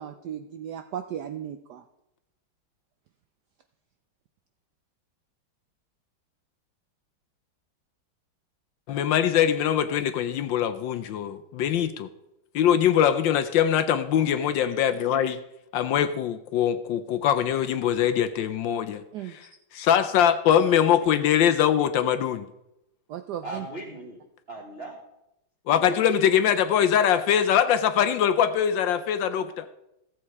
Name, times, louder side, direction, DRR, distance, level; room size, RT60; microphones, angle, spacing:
voice 1, 0.0-1.8 19.1-19.4 23.1-23.7, right 10 dB, 70° right, 8 dB, 1.0 m, -36 dB
voice 2, 8.9-12.1 12.5-15.4 15.7-19.0 19.7-22.5 25.7-29.7, left 9 dB, 75° left, 11 dB, 1.2 m, -22 dB
voice 3, 14.3-14.7 20.7-20.8 23.4-24.2 24.5-25.0 25.7-25.8 26.1-26.2, right 2 dB, 30° right, -2 dB, 1.4 m, -38 dB
14.5 x 7.7 x 4.7 m, 0.87 s
omnidirectional pair, 2.3 m